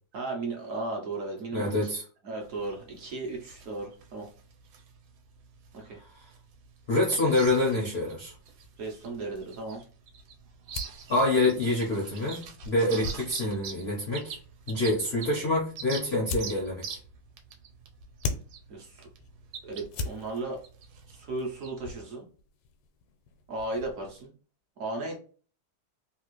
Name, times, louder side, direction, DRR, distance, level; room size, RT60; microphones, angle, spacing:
voice 1, 0.1-1.8 2.2-4.3 5.7-6.0 8.8-9.8 18.7-19.1 19.7-20.6 21.1-22.3 23.5-24.3 24.8-25.1, right 2 dB, 65° right, 0 dB, 0.8 m, -35 dB
voice 2, 1.5-2.0 6.9-8.3 11.1-14.4 14.7-17.0, left 2 dB, 65° left, -2 dB, 0.6 m, -26 dB
sound 1, 2.4-21.7, right 6 dB, 80° right, 1.4 m, -45 dB
sound 2, 7.4-24.3, left 3 dB, 85° left, 1.4 m, -43 dB
3.4 x 2.4 x 3.0 m, 0.40 s
omnidirectional pair, 2.3 m